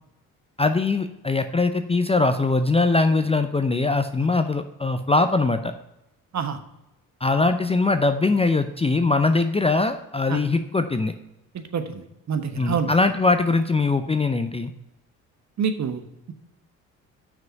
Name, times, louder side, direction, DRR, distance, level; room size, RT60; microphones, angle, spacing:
voice 1, 0.6-5.7 7.2-11.1 12.6-14.7, left 3 dB, 15° left, 9 dB, 0.5 m, -21 dB
voice 2, 11.5-12.9 15.6-16.3, right 6 dB, 40° right, 9 dB, 1.1 m, -27 dB
6.2 x 5.1 x 6.7 m, 0.90 s
hypercardioid pair, 55°, 40 cm